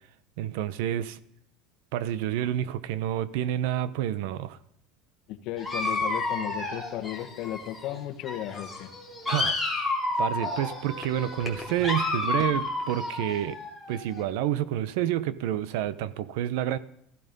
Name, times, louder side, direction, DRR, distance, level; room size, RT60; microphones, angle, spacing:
voice 1, 0.4-1.2 1.9-4.6 9.3-9.6 10.2-13.6 13.9-16.8, right 11 dB, 70° right, 0.8 m, -29 dB
voice 2, 5.3-8.9, left 12 dB, 50° left, 1.5 m, -35 dB
Dog, 5.6-8.0 8.2-14.2, left 2 dB, ahead, 2.5 m, -31 dB
16.0 x 14.5 x 5.4 m
cardioid pair, 165°, 0 cm